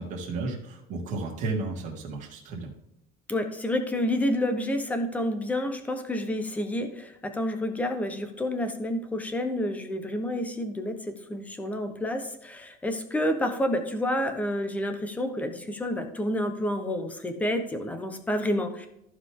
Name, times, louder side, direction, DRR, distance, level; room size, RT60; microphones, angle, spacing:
voice 1, 0.0-2.7, right 3 dB, 40° right, -1 dB, 2.7 m, -33 dB
voice 2, 3.3-18.9, left 1 dB, 10° left, 6 dB, 1.0 m, -29 dB
15.0 x 5.0 x 3.7 m, 0.80 s
cardioid pair, 170°, 19 cm